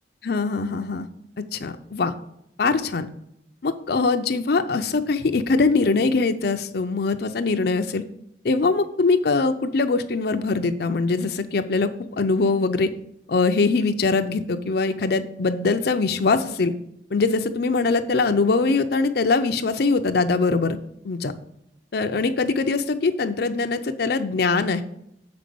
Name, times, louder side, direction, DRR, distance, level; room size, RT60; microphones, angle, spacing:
voice 1, 0.2-1.1 1.5-2.1 2.6-3.1 3.6-8.0 8.4-12.9 13.3-16.7 17.1-20.8 21.0-21.3 21.9-24.8, left 3 dB, 60° left, 8 dB, 0.5 m, -22 dB
6.8 x 5.2 x 6.8 m, 0.76 s
head